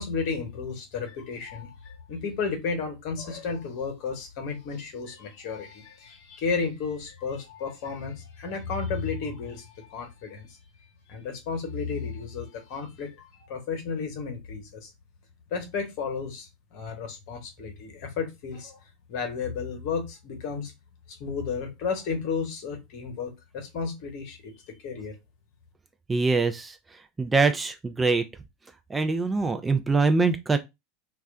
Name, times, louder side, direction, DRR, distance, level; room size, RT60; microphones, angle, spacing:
voice 1, 0.0-10.5 11.1-14.9 15.5-18.8 19.1-20.7 21.1-25.1, left 5 dB, 55° left, 0.9 m, -33 dB
voice 2, 26.1-26.8 27.2-28.2 28.9-30.6, right 3 dB, 20° right, 0.4 m, -23 dB
2.3 x 2.1 x 3.7 m
figure-of-eight pair, 80°, 0 cm